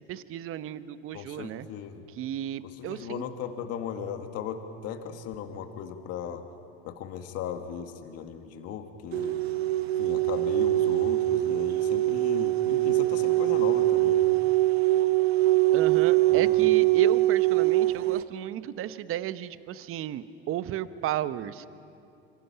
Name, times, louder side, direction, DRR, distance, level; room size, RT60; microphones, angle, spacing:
voice 1, 0.1-1.7 2.1-3.2 15.7-21.7, right 12 dB, 45° right, 14 dB, 1.0 m, -33 dB
voice 2, 1.1-2.0 2.6-6.4 6.8-9.4 10.0-14.4 16.3-16.7, left 8 dB, 50° left, 6 dB, 2.0 m, -37 dB
sound 1, 9.1-18.2, right 16 dB, 85° right, 0.9 m, -23 dB
26.0 x 25.5 x 5.9 m, 2.6 s
hypercardioid pair, 85°, 31 cm